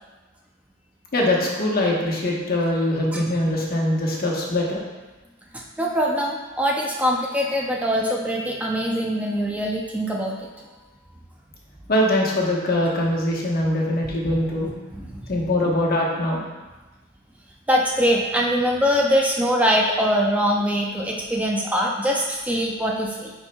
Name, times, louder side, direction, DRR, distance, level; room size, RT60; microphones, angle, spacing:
voice 1, 1.1-4.8 11.9-14.7 15.3-16.4, left 1 dB, 55° left, -2 dB, 1.1 m, -22 dB
voice 2, 5.5-10.5 14.9-15.1 17.7-23.3, equal, 5° right, -2 dB, 0.4 m, -23 dB
9.4 x 4.4 x 2.2 m, 1.2 s
head